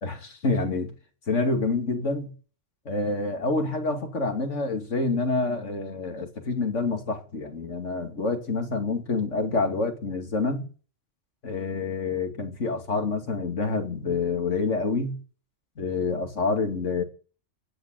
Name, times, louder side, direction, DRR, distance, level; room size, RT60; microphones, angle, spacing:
voice 1, 0.0-0.9 1.3-2.3 2.9-10.6 11.4-15.1 15.8-17.0, left 3 dB, 80° left, 2.8 m, -27 dB
15.5 x 9.1 x 7.7 m
omnidirectional pair, 1.2 m